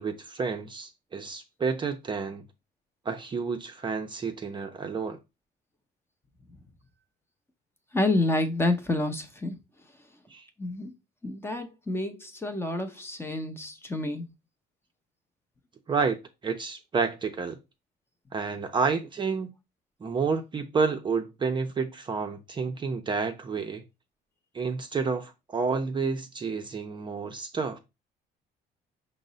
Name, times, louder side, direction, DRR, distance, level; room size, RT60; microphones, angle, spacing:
voice 1, 0.0-2.4 3.1-5.2 10.3-10.5 15.9-17.6 18.3-19.5 20.0-23.8 24.5-27.8, right 5 dB, 30° right, 0.5 m, -30 dB
voice 2, 7.9-9.6 10.6-10.9 11.2-14.3, left 2 dB, 15° left, 0.6 m, -29 dB
5.2 x 2.0 x 3.8 m
cardioid pair, 110°, 17 cm